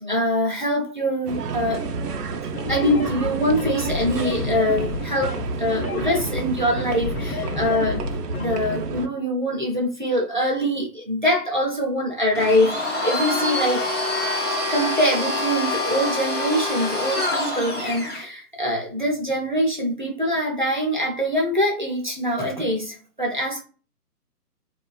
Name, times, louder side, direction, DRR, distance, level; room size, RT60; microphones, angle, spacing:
voice 1, 0.0-1.9 2.7-8.0 8.4-13.9 14.7-23.6, equal, 35° right, -2 dB, 0.4 m, -24 dB
sound 1, 1.3-9.1, right 4 dB, 75° right, 0.6 m, -30 dB
sound 2, 2.5-8.5, left 5 dB, 65° left, 0.5 m, -31 dB
Domestic sounds home sounds, 12.3-18.2, left 2 dB, 15° left, 0.6 m, -26 dB
2.3 x 2.3 x 2.3 m, 0.36 s
figure-of-eight pair, 155°, 48 cm